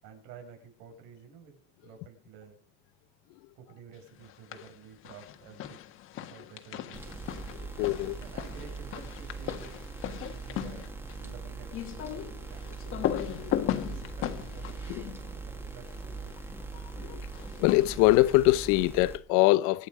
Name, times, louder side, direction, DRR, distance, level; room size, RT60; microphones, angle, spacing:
voice 1, 0.0-2.6 3.6-5.8 6.3-7.1 8.2-9.8 10.2-10.9 11.2-12.7 13.7-16.3, right 6 dB, 75° right, 6.4 m, -51 dB
sound 1, 4.2-4.8 5.0-16.1 17.3-18.5, left 11 dB, 45° left, 1.6 m, -37 dB
sound 2, 6.9-19.2, right 4 dB, 10° right, 2.0 m, -41 dB
voice 2, 7.6-8.2 13.0-13.1 13.4-13.8 14.9-15.0 16.7-17.3 17.6-19.9, left 18 dB, 80° left, 0.9 m, -24 dB
25.0 x 9.6 x 4.9 m
cardioid pair, 175°, 30 cm